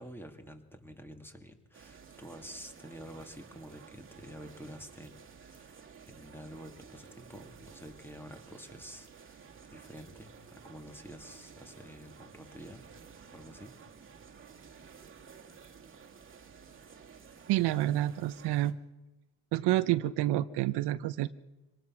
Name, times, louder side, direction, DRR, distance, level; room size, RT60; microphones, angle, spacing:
voice 1, 0.0-9.4 9.7-12.8 13.3-13.7, equal, 5° left, 5 dB, 2.6 m, -49 dB
sound 1, 1.7-18.7, right 6 dB, 30° right, 2.3 m, -53 dB
voice 2, 17.5-18.8 19.5-21.3, right 14 dB, 65° right, 13 dB, 0.8 m, -28 dB
26.0 x 19.0 x 6.0 m, 1.1 s
supercardioid pair, 95°, 43 cm